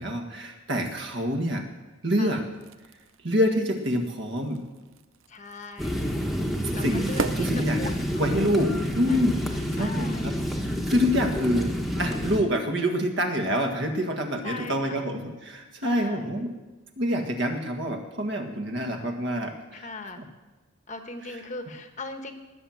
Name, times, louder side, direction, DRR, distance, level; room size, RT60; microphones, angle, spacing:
voice 1, 0.0-1.7 2.0-2.4 3.2-4.6 6.8-7.1 7.4-7.9 8.2-9.4 9.7-10.3 10.9-16.5 17.0-19.9 20.2-20.3, equal, 55° right, 4 dB, 1.7 m, -26 dB
sound 1, 2.4-8.4, right 4 dB, 70° right, 0.7 m, -39 dB
voice 2, 5.3-6.2 6.7-7.5 7.8-8.6 9.1-9.4 9.8-10.5 14.4-15.1 15.8-16.5 19.7-20.2 20.9-22.3, left 2 dB, 35° left, 6 dB, 1.1 m, -39 dB
sound 2, 5.8-12.4, equal, ahead, 1.1 m, -29 dB
19.5 x 7.3 x 7.8 m, 1.1 s
head